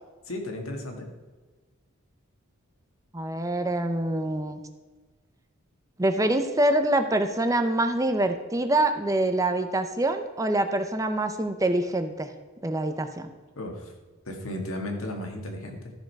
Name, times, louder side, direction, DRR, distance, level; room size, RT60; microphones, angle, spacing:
voice 1, 0.3-1.1 13.6-13.9 14.3-15.9, left 1 dB, 90° left, 3 dB, 1.9 m, -34 dB
voice 2, 3.1-4.6 6.0-12.3 12.6-13.3, right 1 dB, 15° right, 8 dB, 0.6 m, -25 dB
13.5 x 6.4 x 4.7 m, 1.3 s
head